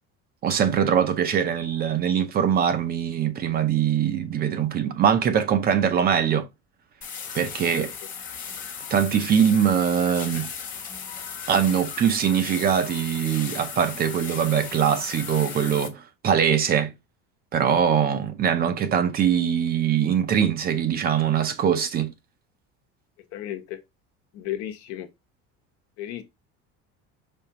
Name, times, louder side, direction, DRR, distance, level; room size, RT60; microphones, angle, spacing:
voice 1, 0.4-6.5 7.3-7.9 8.9-10.5 11.5-16.9 17.5-22.1, right 8 dB, 30° right, 0.6 m, -22 dB
sound 1, 7.0-15.9, left 6 dB, 30° left, 1.0 m, -36 dB
voice 2, 23.3-23.8 24.3-25.1 26.0-26.2, left 12 dB, 65° left, 1.1 m, -34 dB
5.2 x 3.5 x 2.9 m
cardioid pair, 160°, 30 cm